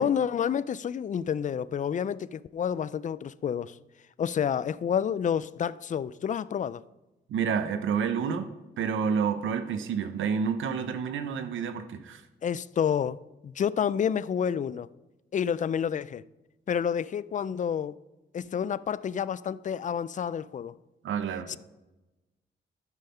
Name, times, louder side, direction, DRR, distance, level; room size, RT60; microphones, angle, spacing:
voice 1, 0.0-3.8 4.2-6.8 12.4-14.9 15.3-16.2 16.7-18.0 18.3-20.7 21.5-21.6, left 8 dB, 40° left, 0.4 m, -29 dB
voice 2, 7.3-8.5 8.8-12.2 21.0-21.6, right 6 dB, 90° right, 0.7 m, -29 dB
12.5 x 5.6 x 5.6 m
cardioid pair, 100°, 20 cm